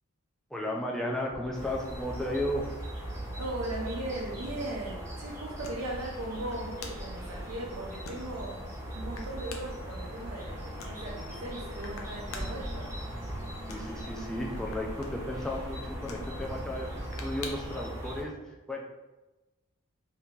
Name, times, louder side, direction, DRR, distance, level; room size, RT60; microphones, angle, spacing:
voice 1, 0.5-2.7 13.7-18.8, left 1 dB, 5° left, -2 dB, 0.4 m, -34 dB
sound 1, 1.2-17.9, left 4 dB, 70° left, 0.5 m, -51 dB
sound 2, 1.5-18.2, equal, 15° right, 0.8 m, -39 dB
voice 2, 3.4-12.9, right 1 dB, 90° right, -5 dB, 0.6 m, -38 dB
2.9 x 2.8 x 3.5 m, 1.1 s
head